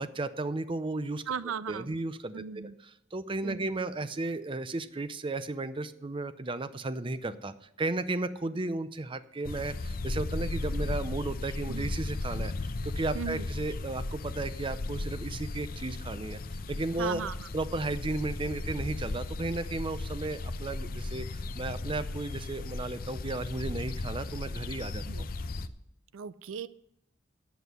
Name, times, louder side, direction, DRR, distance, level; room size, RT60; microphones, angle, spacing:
voice 1, 0.0-1.2 1.7-16.4 16.7-17.2 17.5-25.3, right 2 dB, 25° right, 13 dB, 0.5 m, -34 dB
voice 2, 1.3-1.9 2.3-2.7 3.4-3.7 11.7-11.9 13.1-13.5 17.0-17.5 25.1-25.2 26.1-26.7, right 6 dB, 85° right, 16 dB, 0.4 m, -37 dB
sound 1, 9.5-25.7, left 2 dB, 45° left, 0.6 m, -36 dB
9.4 x 7.9 x 6.8 m, 0.79 s
head